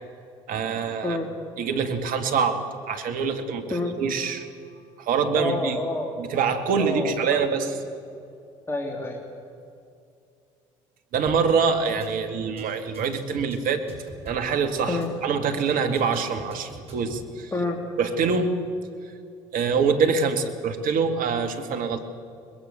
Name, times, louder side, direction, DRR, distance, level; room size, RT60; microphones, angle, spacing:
voice 1, 0.5-1.2 1.6-4.5 5.0-5.8 6.2-7.7 11.1-13.9 14.2-15.0 15.2-17.5 18.0-18.6 19.5-22.1, right 5 dB, 55° right, 7 dB, 2.2 m, -25 dB
voice 2, 5.3-6.1 6.7-7.8 8.7-9.2 14.9-15.1 17.5-17.8, left 2 dB, 15° left, 0 dB, 2.9 m, -28 dB
sound 1, 11.3-11.5 11.8-12.1 12.4-12.6 12.9-14.5 14.8-15.1 15.4-15.6 15.9-17.2, right 1 dB, 40° right, 7.4 m, -45 dB
23.0 x 21.0 x 6.9 m, 2.4 s
hypercardioid pair, 60°, 16 cm